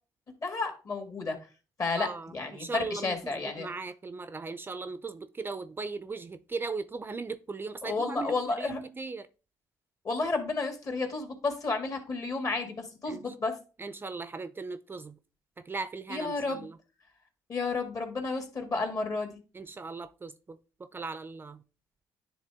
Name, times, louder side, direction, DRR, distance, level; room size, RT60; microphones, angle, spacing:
voice 1, 0.4-1.4 1.8-3.7 7.8-8.8 10.0-13.6 16.1-16.6 17.5-19.4, left 3 dB, 45° left, 2.1 m, -31 dB
voice 2, 2.0-9.3 13.1-13.3 13.8-15.2 15.6-16.8 19.5-20.6 20.9-21.6, right 4 dB, 25° right, 0.5 m, -38 dB
10.0 x 3.4 x 3.5 m
supercardioid pair, 70°, 8 cm